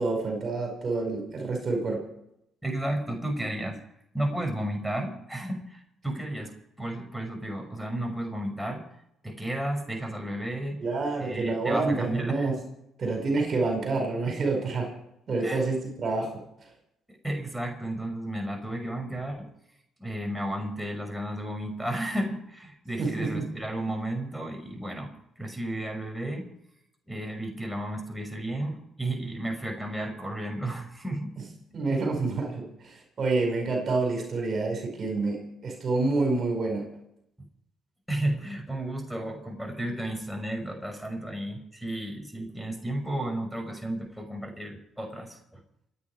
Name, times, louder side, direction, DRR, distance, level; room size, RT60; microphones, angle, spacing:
voice 1, 0.0-2.0 10.8-12.6 13.0-14.9 15.3-16.3 23.0-23.5 31.7-36.9, right 3 dB, 50° right, 3 dB, 5.2 m, -28 dB
voice 2, 2.6-3.8 4.1-8.8 9.2-10.8 11.2-12.5 15.4-15.6 17.1-19.5 20.0-25.1 25.4-26.5 27.1-31.3 38.1-45.6, right 1 dB, 5° right, 3 dB, 6.0 m, -33 dB
28.0 x 9.7 x 4.9 m, 0.77 s
supercardioid pair, 65°, 0 cm